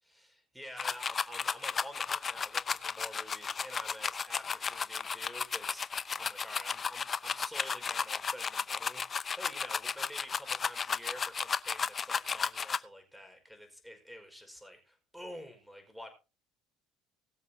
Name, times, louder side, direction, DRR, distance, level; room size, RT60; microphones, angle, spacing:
voice 1, 0.0-16.1, equal, ahead, 5.2 m, -48 dB
sound 1, 0.8-12.8, left 6 dB, 35° left, 0.8 m, -34 dB
21.0 x 7.5 x 2.8 m
hypercardioid pair, 80°, 0 cm